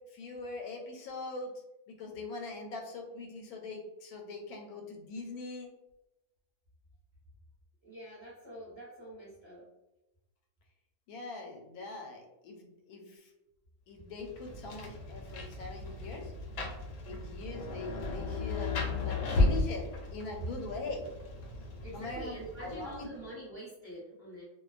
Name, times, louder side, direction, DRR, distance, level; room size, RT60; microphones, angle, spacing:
voice 1, 0.1-1.5 1.9-5.7 11.1-13.3 13.9-16.3 17.1-18.7 19.0-19.9 20.1-21.1 21.9-23.3, left 3 dB, 90° left, 2 dB, 1.1 m, -42 dB
voice 2, 7.8-9.6 21.8-24.4, equal, 25° right, -8 dB, 0.7 m, -46 dB
Rain, 14.2-23.2, left 2 dB, 65° left, 0.8 m, -35 dB
2.4 x 2.2 x 2.4 m, 0.96 s
omnidirectional pair, 1.5 m